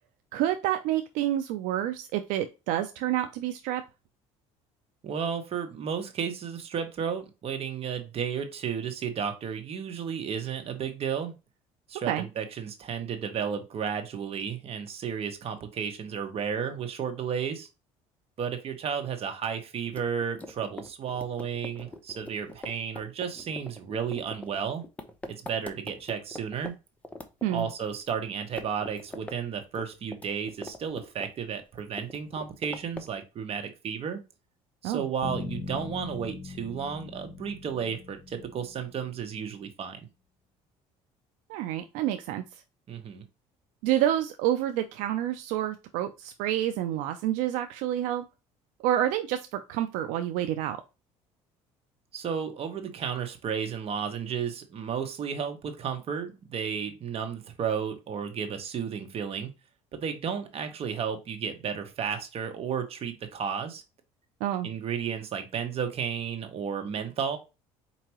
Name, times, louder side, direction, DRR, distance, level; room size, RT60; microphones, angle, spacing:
voice 1, 0.3-3.8 12.1-12.3 27.4-27.7 34.8-35.1 41.5-42.4 43.8-48.2 48.8-50.8 64.4-64.7, right 12 dB, 80° right, 8 dB, 0.5 m, -28 dB
voice 2, 5.0-11.3 11.9-17.7 18.4-24.8 25.3-26.7 27.5-34.2 34.8-40.0 42.9-43.2 52.1-59.5 59.9-63.8 64.6-67.4, right 7 dB, 45° right, 6 dB, 1.1 m, -33 dB
sound 1, 19.9-26.7 27.0-28.2 28.4-29.4 29.6-31.5 31.8-33.2, left 2 dB, 10° left, 0.7 m, -42 dB
Bass guitar, 35.2-39.2, left 4 dB, 55° left, 0.8 m, -40 dB
4.6 x 2.8 x 2.9 m, 0.27 s
supercardioid pair, 95°, 13 cm